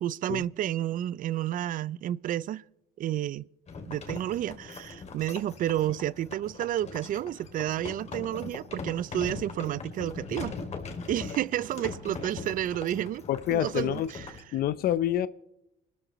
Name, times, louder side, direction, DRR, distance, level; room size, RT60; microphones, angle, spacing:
voice 1, 0.0-2.6 3.0-3.5 3.9-10.6 11.1-13.2 13.5-14.3, right 12 dB, 55° right, 0.4 m, -31 dB
sound 1, 3.7-14.4, left 4 dB, 40° left, 2.6 m, -41 dB
voice 2, 13.3-14.1 14.5-15.3, left 11 dB, 65° left, 0.6 m, -27 dB
26.5 x 13.0 x 3.1 m
cardioid pair, 110°, 17 cm